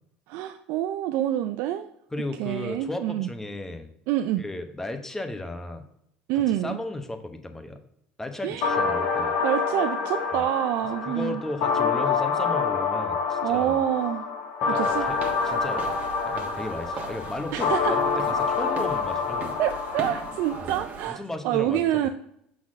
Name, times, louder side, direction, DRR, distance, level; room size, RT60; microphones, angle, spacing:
voice 1, 0.3-1.9 2.4-3.3 4.1-4.4 6.3-6.8 8.4-8.7 9.4-11.4 13.4-14.2 14.7-15.1 17.5-18.0 19.6-22.1, right 12 dB, 70° right, 8 dB, 0.4 m, -27 dB
voice 2, 2.1-3.9 4.4-5.8 6.6-7.8 8.2-9.3 10.3-10.4 11.0-13.8 14.6-15.2 15.4-15.9 16.3-19.6 20.6-20.8 21.1-22.1, left 2 dB, 10° left, 6 dB, 1.0 m, -35 dB
sound 1, 8.6-20.6, left 5 dB, 75° left, 1.6 m, -27 dB
sound 2, 14.8-21.1, right 4 dB, 40° right, 1.3 m, -40 dB
6.0 x 4.2 x 6.1 m, 0.73 s
supercardioid pair, 90°, 4 cm